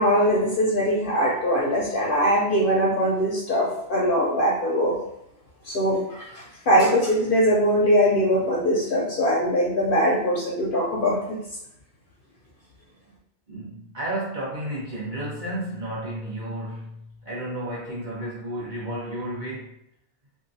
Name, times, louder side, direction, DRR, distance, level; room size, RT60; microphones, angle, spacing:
voice 1, 0.0-5.0 5.6-11.4, equal, 55° left, -3 dB, 0.7 m, -22 dB
voice 2, 13.5-19.7, right 1 dB, 45° right, -7 dB, 1.1 m, -32 dB
2.9 x 2.4 x 2.7 m, 0.77 s
omnidirectional pair, 1.2 m